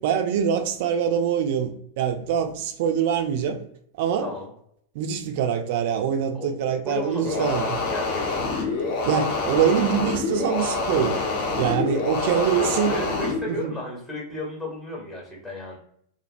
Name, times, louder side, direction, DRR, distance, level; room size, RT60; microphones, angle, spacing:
voice 1, 0.0-3.6 4.0-4.3 4.9-7.8 9.0-11.2 11.6-13.0 13.5-13.7, right 8 dB, 50° right, 0.3 m, -24 dB
voice 2, 4.2-4.5 6.3-8.4 11.9-12.2 12.6-15.8, left 1 dB, 10° left, 0.8 m, -34 dB
sound 1, 7.2-13.4, left 3 dB, 50° left, 0.6 m, -26 dB
2.4 x 2.0 x 2.5 m
figure-of-eight pair, 90°, 0 cm